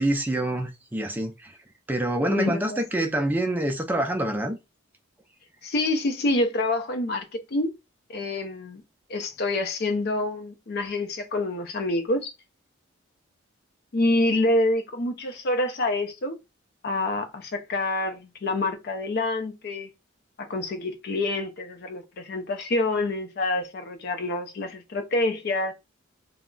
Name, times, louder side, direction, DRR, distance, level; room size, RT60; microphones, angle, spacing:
voice 1, 0.0-1.6 1.9-4.6, right 1 dB, 10° right, 0.4 m, -26 dB
voice 2, 2.2-2.8 3.2-3.3 5.6-7.7 8.1-8.8 9.1-12.3 13.9-16.4 16.8-19.9 20.4-25.7, left 2 dB, 50° left, 0.4 m, -27 dB
2.3 x 2.0 x 3.7 m
head